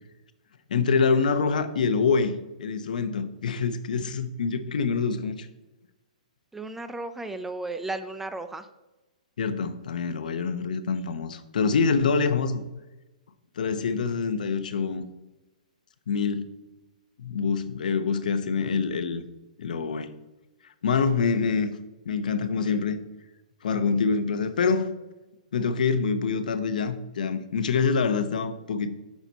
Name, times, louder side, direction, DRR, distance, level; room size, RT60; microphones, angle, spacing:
voice 1, 0.7-5.5 9.4-12.6 13.6-15.1 16.1-16.5 17.2-19.2 19.6-20.1 20.8-21.8 22.1-23.0 23.6-24.9 25.5-28.9, left 5 dB, 75° left, 11 dB, 0.8 m, -25 dB
voice 2, 6.5-8.7, right 2 dB, 5° right, 10 dB, 0.3 m, -34 dB
8.9 x 5.9 x 4.0 m, 1.1 s
hypercardioid pair, 155°, 4 cm